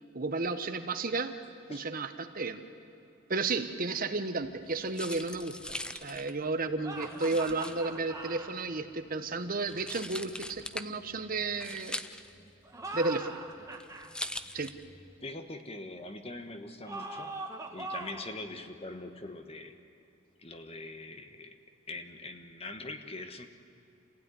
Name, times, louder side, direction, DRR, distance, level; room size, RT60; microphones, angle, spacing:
voice 1, 0.1-1.3 1.7-2.6 3.3-12.0 12.9-13.4 14.5-14.7, right 3 dB, 40° right, 9 dB, 1.2 m, -33 dB
sound 1, 4.4-15.2, left 1 dB, 5° left, 0.6 m, -43 dB
sound 2, 6.8-8.5 12.6-14.1 16.9-18.3, right 2 dB, 15° right, 1.7 m, -41 dB
voice 2, 15.2-17.4 17.7-19.7 20.4-21.6 21.9-23.5, left 2 dB, 30° left, 7 dB, 1.4 m, -43 dB
28.0 x 16.0 x 9.9 m, 2.9 s
head